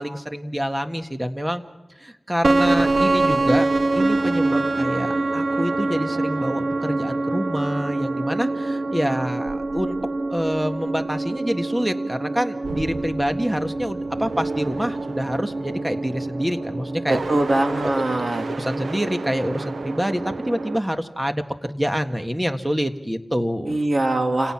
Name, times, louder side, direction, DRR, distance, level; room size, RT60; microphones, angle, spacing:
voice 1, 0.0-1.6 2.0-3.7 3.9-10.0 10.3-17.2 17.8-18.0 18.6-23.8, equal, 15° right, 6 dB, 1.7 m, -26 dB
sound 1, 2.4-20.8, right 2 dB, 85° right, 1.0 m, -25 dB
voice 2, 17.3-18.4 23.7-24.5, right 2 dB, 60° right, 3 dB, 3.1 m, -22 dB
28.5 x 17.5 x 6.0 m, 1.1 s
cardioid pair, 50°, 0 cm